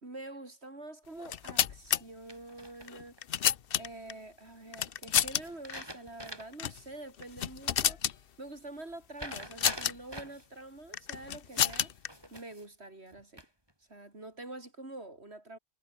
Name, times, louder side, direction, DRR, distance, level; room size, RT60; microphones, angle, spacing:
voice 1, 0.0-3.2 3.8-8.0 8.4-11.9 12.3-13.4 13.9-15.6, right 2 dB, 80° right, 4.9 m, -46 dB
sound 1, 1.2-2.0 2.9-4.1 4.7-5.4 5.7-5.8 6.5-6.8 7.2-8.2 9.3-9.9 10.9-12.1, left 9 dB, 60° left, 0.9 m, -30 dB
sound 2, 2.3-3.2 5.4-6.7 7.1-7.2 9.2-10.5 11.5-12.7 13.1-13.7, equal, 20° right, 7.8 m, -45 dB
omnidirectional pair, 1.1 m